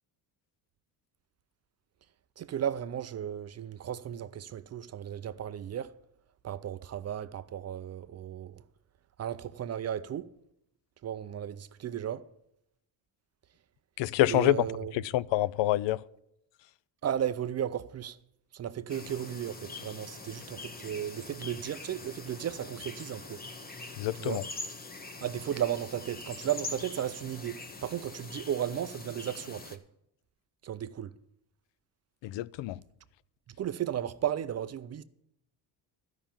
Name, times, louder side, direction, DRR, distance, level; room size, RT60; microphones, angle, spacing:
voice 1, 2.4-5.9 6.4-8.6 9.2-10.3 11.0-12.3 14.3-14.9 17.0-18.2 18.5-23.4 24.2-24.4 25.2-29.8 30.6-31.1 33.6-35.0, right 10 dB, 35° right, 0.4 m, -35 dB
voice 2, 14.0-14.6 14.9-16.0 23.9-24.4 32.2-32.8, left 14 dB, 70° left, 0.5 m, -27 dB
sound 1, 18.9-29.8, left 3 dB, 20° left, 0.9 m, -44 dB
12.5 x 5.8 x 8.9 m
cardioid pair, 125°, 46 cm